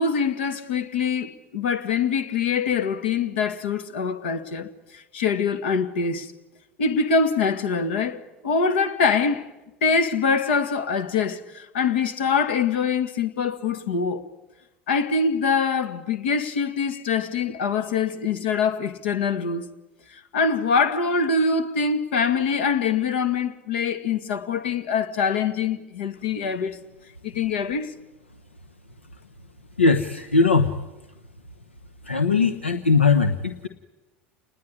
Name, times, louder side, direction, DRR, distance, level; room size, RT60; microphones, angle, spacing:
voice 1, 0.0-6.3 6.8-9.5 9.8-14.3 14.9-19.7 20.1-26.8 27.2-27.9, left 5 dB, 70° left, 2.1 m, -24 dB
voice 2, 29.8-30.7 32.0-33.7, left 4 dB, 90° left, 1.1 m, -20 dB
29.5 x 20.0 x 9.8 m
figure-of-eight pair, 75°, 6 cm